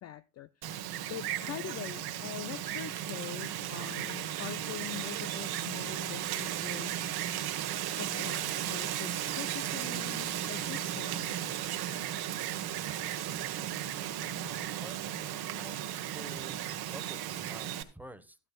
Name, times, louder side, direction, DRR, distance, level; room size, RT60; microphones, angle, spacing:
voice 1, 0.0-7.0 8.0-11.4, left 12 dB, 35° left, 0.5 m, -44 dB
Wind, 0.6-17.8, right 11 dB, 55° right, 1.2 m, -35 dB
voice 2, 14.4-18.4, right 1 dB, 5° right, 1.1 m, -51 dB
13.0 x 12.5 x 2.3 m
supercardioid pair, 80°, 46 cm